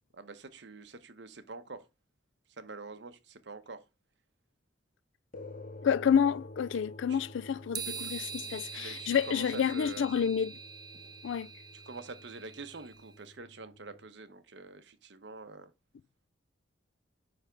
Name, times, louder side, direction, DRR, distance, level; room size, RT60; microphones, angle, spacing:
voice 1, 0.1-1.9 2.6-3.8 7.1-7.2 7.8-7.9 8.4-10.1 10.9-11.1 11.9-15.7, right 3 dB, 65° right, 0.9 m, -46 dB
sound 1, 5.3-14.1, left 2 dB, 40° left, 0.8 m, -50 dB
voice 2, 5.8-10.5 11.2-11.5, left 7 dB, 75° left, 0.3 m, -29 dB
sound 2, 7.7-13.0, right 6 dB, 20° right, 0.3 m, -43 dB
9.1 x 3.4 x 5.1 m
head